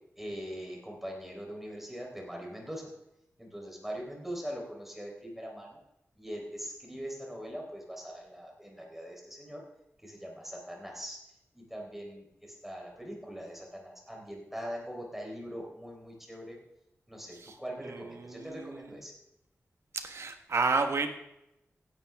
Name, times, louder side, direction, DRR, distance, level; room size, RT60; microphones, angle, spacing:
voice 1, 0.2-2.9 3.4-5.8 6.2-9.6 10.0-11.2 11.5-16.6 17.1-19.1, equal, 5° right, -1 dB, 4.0 m, -42 dB
voice 2, 17.3-19.0 19.9-21.1, right 4 dB, 70° right, 6 dB, 1.4 m, -32 dB
16.0 x 11.5 x 3.5 m, 0.85 s
wide cardioid pair, 110°, 5 cm